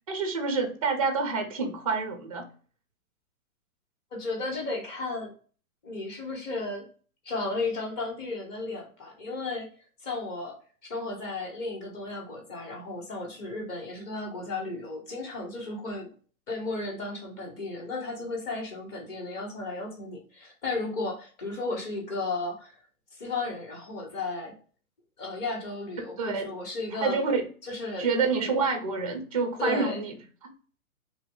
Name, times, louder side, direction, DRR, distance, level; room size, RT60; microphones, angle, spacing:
voice 1, 0.1-2.5 26.2-26.5 27.0-27.4 28.0-30.2 30.4-30.5, right 4 dB, 25° right, 5 dB, 0.3 m, -27 dB
voice 2, 4.1-5.3 5.8-6.9 7.2-9.7 10.0-10.6 10.8-16.1 16.5-22.7 23.2-24.5 25.2-27.2 27.6-28.1 29.6-30.0, left 3 dB, 25° left, 0 dB, 1.1 m, -34 dB
3.0 x 2.3 x 3.6 m, 0.41 s
hypercardioid pair, 140°, 45 cm